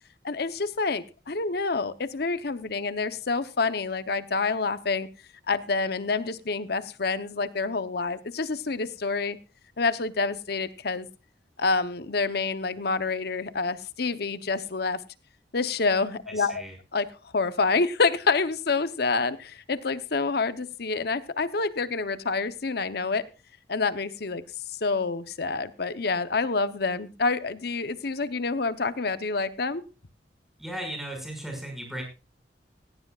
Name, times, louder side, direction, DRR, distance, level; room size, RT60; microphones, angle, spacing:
voice 1, 0.2-5.1 5.5-9.4 9.8-11.1 11.6-15.0 15.5-16.6 16.9-23.2 23.7-24.4 24.7-29.8, left 4 dB, 60° left, 13 dB, 0.9 m, -27 dB
voice 2, 16.4-16.7 30.6-32.0, right 1 dB, ahead, 2 dB, 5.9 m, -36 dB
17.0 x 16.5 x 2.4 m, 0.31 s
head